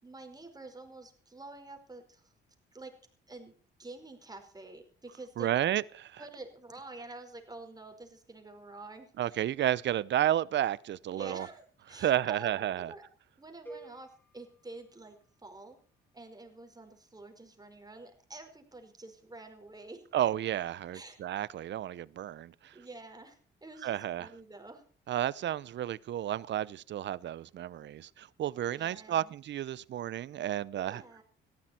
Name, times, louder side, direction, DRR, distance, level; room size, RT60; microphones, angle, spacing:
voice 1, 0.0-2.3 2.7-2.9 3.3-3.5 3.8-5.5 6.2-9.5 11.1-13.1 13.4-15.2 15.4-15.8 16.1-20.0 20.9-21.2 22.7-24.8 28.7-29.3 30.7-31.2, right 2 dB, 20° right, 4.9 m, -48 dB
voice 2, 5.4-6.2 9.2-11.5 12.0-12.9 20.1-22.7 23.8-24.3 25.1-31.0, right 11 dB, 65° right, 0.8 m, -32 dB
sound 1, 13.7-15.7, right 2 dB, 10° left, 4.9 m, -52 dB
18.5 x 15.0 x 4.5 m
cardioid pair, 90°, 20 cm